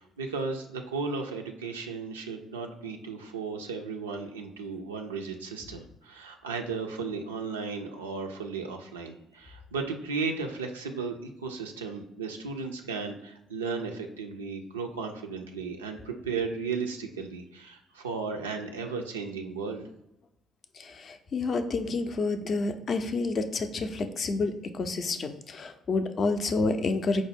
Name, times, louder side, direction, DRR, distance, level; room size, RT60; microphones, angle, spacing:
voice 1, 0.0-19.9, right 4 dB, 85° right, 3 dB, 0.3 m, -35 dB
voice 2, 20.7-27.2, left 3 dB, 45° left, 8 dB, 0.4 m, -29 dB
4.7 x 2.0 x 3.4 m, 0.84 s
figure-of-eight pair, 50°, 0 cm